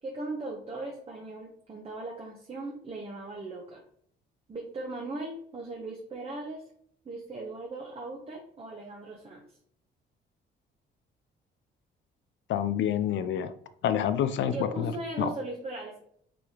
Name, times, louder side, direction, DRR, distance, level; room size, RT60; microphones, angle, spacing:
voice 1, 0.0-3.8 4.5-6.7 7.0-9.4 14.4-16.0, right 2 dB, 30° right, 0 dB, 0.9 m, -38 dB
voice 2, 12.5-13.5 13.8-14.9 15.2-15.3, left 9 dB, 70° left, 11 dB, 0.4 m, -27 dB
5.1 x 3.4 x 2.9 m, 0.65 s
cardioid pair, 90°, 20 cm